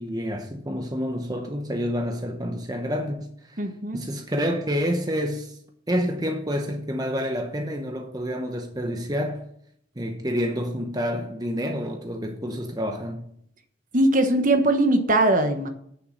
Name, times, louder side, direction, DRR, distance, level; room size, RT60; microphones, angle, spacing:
voice 1, 0.0-3.6 3.9-5.6 5.9-9.4 10.0-13.2, equal, 20° right, 0.9 m, -28 dB
voice 2, 3.6-4.0 13.9-15.7, right 1 dB, 45° right, 1.3 m, -20 dB
9.2 x 6.9 x 6.4 m
head